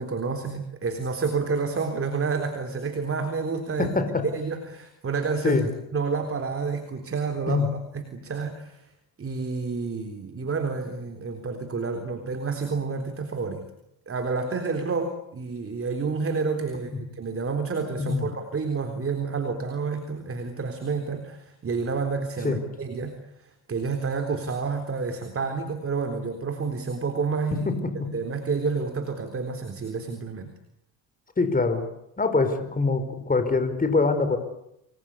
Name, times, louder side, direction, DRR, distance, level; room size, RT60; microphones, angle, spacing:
voice 1, 0.0-3.9 4.3-5.6 5.9-7.6 7.9-8.8 9.2-13.7 14.1-27.7 28.1-30.5, right 4 dB, 35° right, 6 dB, 3.8 m, -29 dB
voice 2, 3.8-4.2 5.4-5.7 7.5-7.7 18.0-18.3 22.4-22.6 27.6-27.9 31.4-31.8 32.2-34.4, left 3 dB, 20° left, 9 dB, 5.0 m, -23 dB
28.5 x 22.0 x 8.5 m, 0.81 s
cardioid pair, 100°, 38 cm